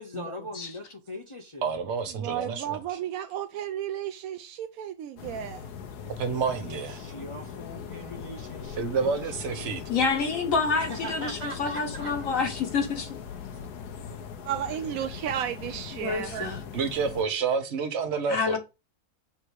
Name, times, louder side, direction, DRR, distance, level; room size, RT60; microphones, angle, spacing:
voice 1, 0.0-1.7 6.3-9.2 9.5-9.7 10.8-12.1, equal, 30° left, 0.6 m, -40 dB
voice 2, 1.6-3.0 6.2-7.0 8.8-9.8 16.7-18.6, right 5 dB, 50° right, 1.3 m, -29 dB
voice 3, 2.2-5.7 14.4-16.5, right 10 dB, 70° right, 1.0 m, -33 dB
sound 1, 5.2-17.2, left 7 dB, 80° left, 1.4 m, -40 dB
voice 4, 9.9-13.1 15.9-16.6 18.3-18.6, left 4 dB, 60° left, 1.5 m, -28 dB
7.0 x 3.4 x 4.7 m
omnidirectional pair, 1.7 m